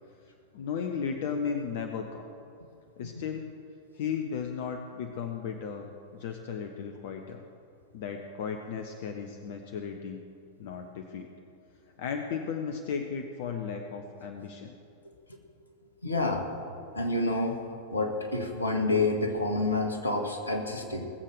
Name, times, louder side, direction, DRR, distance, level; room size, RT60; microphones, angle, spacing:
voice 1, 0.2-2.2 3.0-3.5 3.9-7.4 7.9-10.2 10.6-11.3 12.0-14.7, left 6 dB, 55° left, 5 dB, 0.9 m, -35 dB
voice 2, 16.0-16.5 16.9-17.6 17.9-21.1, left 2 dB, 80° left, 3 dB, 1.7 m, -28 dB
19.5 x 7.6 x 6.8 m, 2.6 s
figure-of-eight pair, 90°, 0 cm